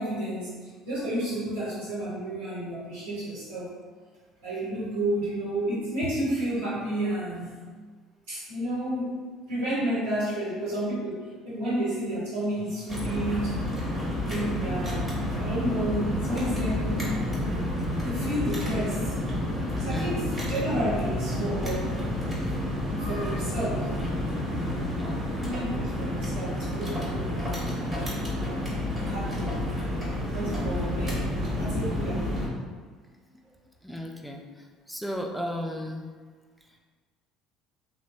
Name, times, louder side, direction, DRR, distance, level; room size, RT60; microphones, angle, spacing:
voice 1, 0.0-3.7 4.4-7.6 8.3-9.2 9.5-13.6 14.3-17.2 18.0-19.2 19.8-21.9 22.9-23.9 24.6-24.9 25.4-27.8 29.0-29.5 30.3-32.3, right 1 dB, 85° right, -11 dB, 0.9 m, -31 dB
sound 1, 12.9-32.5, left 1 dB, 20° right, 1.1 m, -30 dB
voice 2, 33.8-34.4 34.9-36.1, equal, ahead, 1 dB, 0.4 m, -34 dB
3.0 x 2.1 x 2.6 m, 1.5 s
hypercardioid pair, 65°, 0 cm